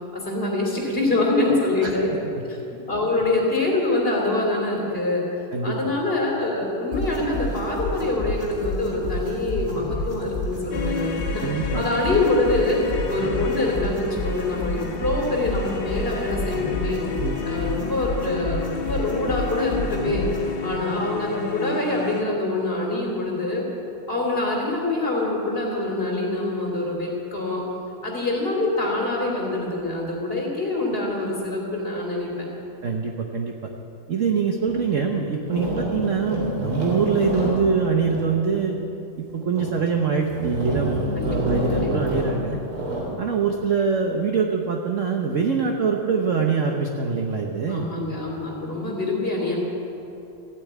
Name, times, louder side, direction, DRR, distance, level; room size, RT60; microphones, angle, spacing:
voice 1, 0.1-2.1 2.5-2.6 2.9-5.2 5.6-11.4 11.7-12.8 13.1-17.0 17.4-20.3 20.6-23.6 24.1-27.6 28.0-32.5 41.2-41.3 41.7-42.1 47.7-49.6, left 2 dB, 25° left, -1 dB, 3.0 m, -25 dB
voice 2, 1.6-1.9 5.5-5.7 11.4-11.8 17.2-17.4 32.8-33.5 34.1-38.8 39.2-42.6 43.2-47.9, right 5 dB, 50° right, 2 dB, 1.0 m, -24 dB
sound 1, 6.9-20.5, left 1 dB, 10° right, 4.6 m, -31 dB
sound 2, 10.7-22.2, left 5 dB, 65° left, 1.8 m, -31 dB
sound 3, 34.7-34.8 35.4-38.7 39.3-39.8 40.2-43.2, right 1 dB, 85° right, 4.0 m, -28 dB
15.0 x 8.5 x 9.3 m, 2.9 s
omnidirectional pair, 2.3 m